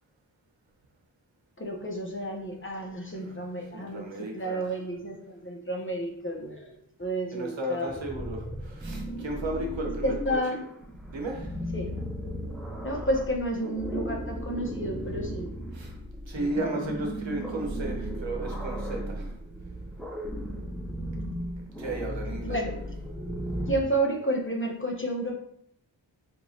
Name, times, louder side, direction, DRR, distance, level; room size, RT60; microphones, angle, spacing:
voice 1, 1.6-4.0 4.3-8.0 10.0-10.6 11.7-12.0 12.8-15.5 16.6-16.9 22.4-22.8 23.7-25.3, right 1 dB, 25° left, 1 dB, 0.8 m, -31 dB
voice 2, 3.1-4.8 7.3-10.4 11.1-11.6 15.7-15.9 16.3-19.3 21.8-22.9, right 1 dB, 80° right, 1 dB, 1.0 m, -35 dB
sound 1, 7.9-23.8, right 1 dB, ahead, 0.6 m, -36 dB
4.5 x 3.0 x 2.7 m, 0.70 s
wide cardioid pair, 45°, 45 cm